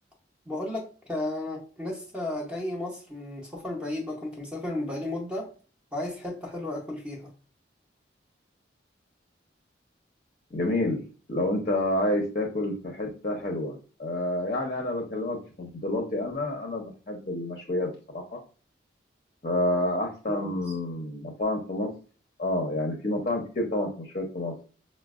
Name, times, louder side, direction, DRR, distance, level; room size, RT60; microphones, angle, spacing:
voice 1, 0.5-5.5 5.9-7.3 20.3-20.6, left 1 dB, 5° right, -1 dB, 0.6 m, -34 dB
voice 2, 10.5-11.0 11.3-18.4 19.4-21.9 22.4-24.5, left 1 dB, 40° left, 1 dB, 0.6 m, -29 dB
4.9 x 2.0 x 2.3 m, 0.38 s
head